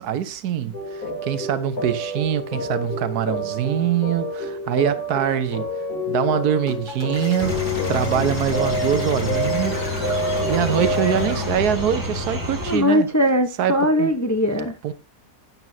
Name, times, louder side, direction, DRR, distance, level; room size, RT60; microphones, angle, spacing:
voice 1, 0.0-5.6 6.1-9.9 10.5-13.1 13.6-14.1 14.8-14.9, right 9 dB, 80° right, 1.4 m, -24 dB
sound 1, 0.7-11.4, left 1 dB, 70° left, 3.9 m, -28 dB
sound 2, 6.7-11.7, left 3 dB, 50° left, 2.3 m, -36 dB
sound 3, 7.4-12.8, left 2 dB, 15° right, 1.7 m, -28 dB
voice 2, 12.6-14.7, equal, 15° left, 0.6 m, -20 dB
12.0 x 8.7 x 2.7 m
omnidirectional pair, 1.6 m